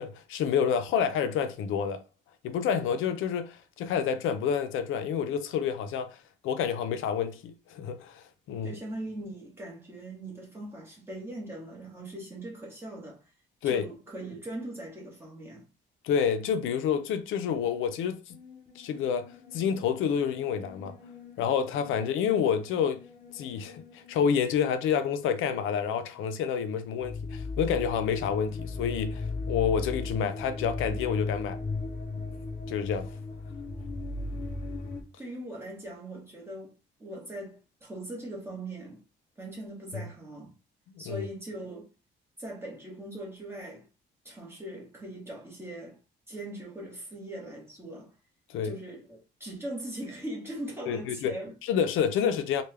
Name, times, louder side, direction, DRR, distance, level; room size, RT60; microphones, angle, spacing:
voice 1, 0.0-2.0 2.4-6.2 6.4-8.7 13.6-13.9 16.0-18.4 18.8-20.9 21.4-23.0 23.3-31.6 32.7-33.1 41.1-41.3 48.5-48.7 50.9-51.3 51.6-52.6, left 7 dB, 85° left, 0.5 m, -28 dB
voice 2, 8.6-13.2 13.6-15.6 35.2-36.7 37.0-39.0 39.4-40.5 41.0-41.9 42.4-43.8 44.2-46.0 46.3-48.1 48.6-51.5, right 1 dB, 10° right, 1.2 m, -40 dB
sound 1, 18.3-25.7 26.1-26.5 26.9-35.0, left 3 dB, 40° left, 0.6 m, -38 dB
3.3 x 2.2 x 3.3 m
cardioid pair, 155°, 20 cm